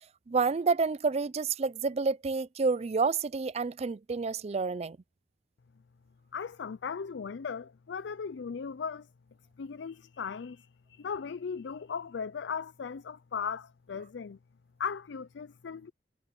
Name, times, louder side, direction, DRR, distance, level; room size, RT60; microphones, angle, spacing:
voice 1, 0.3-5.0, right 4 dB, 35° right, 0.4 m, -29 dB
voice 2, 6.3-9.1 9.6-14.4 14.8-15.9, left 6 dB, 75° left, 0.4 m, -37 dB
head